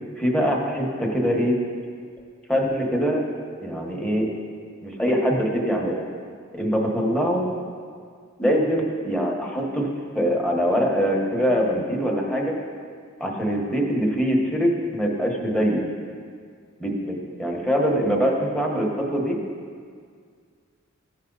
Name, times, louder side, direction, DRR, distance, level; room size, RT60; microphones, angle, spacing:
voice 1, 0.2-1.6 2.5-3.2 3.6-4.3 4.8-6.1 6.5-7.5 8.4-9.9 10.1-12.6 13.2-15.8 16.8-19.4, equal, 5° left, -1 dB, 1.4 m, -23 dB
16.5 x 6.7 x 4.1 m, 2.1 s
head